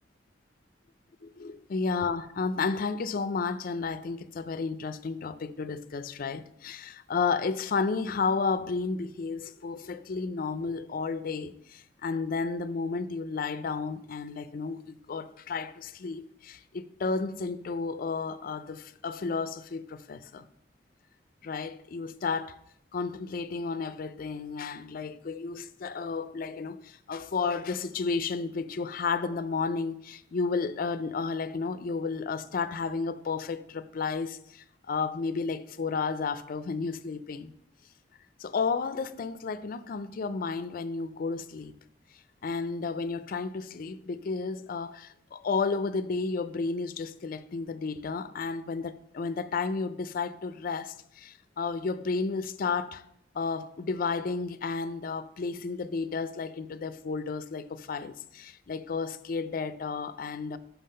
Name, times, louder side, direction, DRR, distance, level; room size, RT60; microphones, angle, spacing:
voice 1, 1.7-20.4 21.4-22.6 22.9-37.5 38.4-41.7 42.4-53.0 53.3-60.6, left 4 dB, 50° left, 0.4 m, -32 dB
5.7 x 5.6 x 5.5 m
head